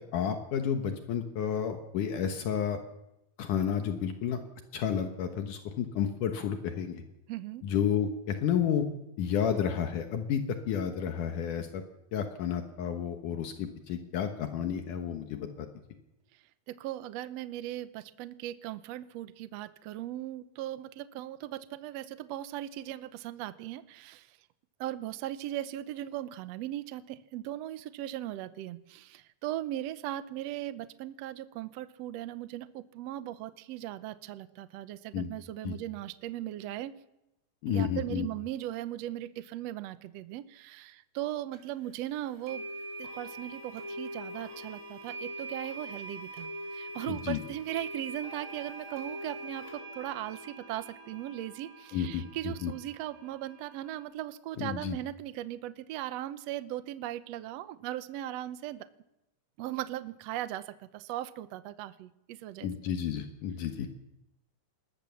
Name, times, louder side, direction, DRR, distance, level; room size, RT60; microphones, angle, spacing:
voice 1, 0.1-2.8 3.4-4.4 4.7-7.0 7.6-8.9 9.2-11.8 12.1-15.7 35.1-35.3 35.6-35.8 37.6-38.3 47.1-47.4 51.9-52.7 54.6-55.0 62.6-63.9, left 8 dB, 75° left, 5 dB, 2.8 m, -31 dB
voice 2, 7.3-7.6 16.7-24.4 24.8-36.9 37.7-42.7 43.0-58.9 59.6-62.7, right 13 dB, 70° right, 12 dB, 1.7 m, -38 dB
sound 1, 41.5-41.6 42.5-54.0, right 1 dB, 25° right, 4.8 m, -43 dB
20.5 x 19.5 x 7.1 m, 0.88 s
omnidirectional pair, 3.7 m